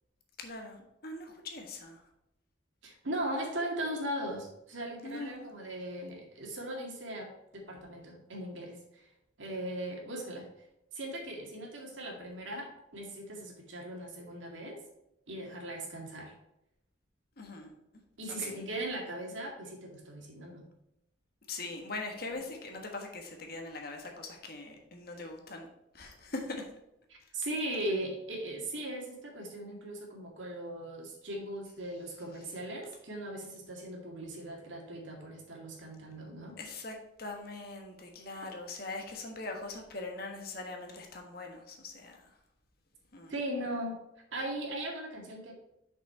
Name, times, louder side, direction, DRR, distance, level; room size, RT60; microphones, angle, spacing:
voice 1, 0.4-2.0 5.0-5.4 17.4-17.8 18.3-18.7 21.5-25.7 25.9-26.7 36.6-42.4 43.1-43.3, left 2 dB, 55° left, 3 dB, 1.4 m, -42 dB
voice 2, 2.8-9.1 9.4-10.5 10.9-14.8 15.3-16.3 18.2-20.6 27.1-36.5 43.3-44.0 44.3-45.6, right 1 dB, 90° right, 0 dB, 2.1 m, -38 dB
6.0 x 5.7 x 4.5 m, 0.85 s
head